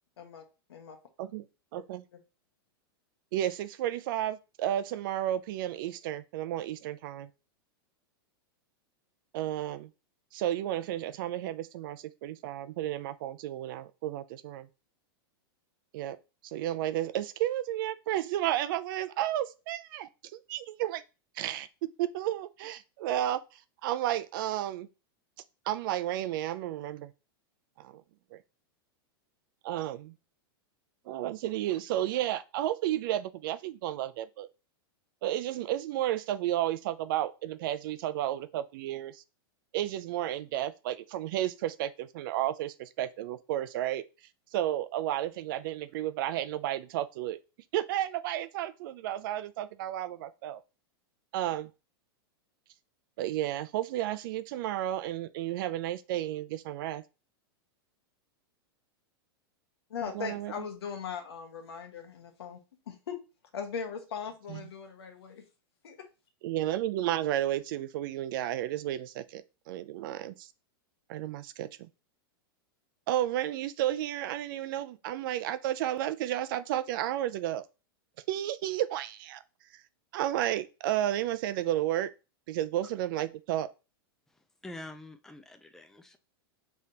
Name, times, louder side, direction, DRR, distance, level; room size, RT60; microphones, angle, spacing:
voice 1, 0.2-1.0 1.7-1.8 59.9-62.6 62.9-63.2 63.5-65.4 65.8-66.1, left 6 dB, 90° left, 1.2 m, -39 dB
voice 2, 1.7-2.0 3.3-7.3 9.3-9.9 10.3-14.7 15.9-16.2 16.4-21.0 21.4-21.7 22.0-23.4 23.8-24.9 25.7-27.1 27.8-28.0 28.3-28.4 29.6-30.1 31.1-34.5 35.2-39.2 39.7-44.0 44.5-47.4 47.7-50.6 51.3-51.7 53.2-57.0 60.1-60.5 64.5-64.6 66.4-70.5 71.1-71.9 73.1-77.6 78.3-79.4 80.1-82.1 82.5-83.7, right 13 dB, 60° right, 0.5 m, -32 dB
voice 3, 84.6-86.2, left 2 dB, 5° left, 0.4 m, -46 dB
5.1 x 3.4 x 2.8 m
supercardioid pair, 135°, 13 cm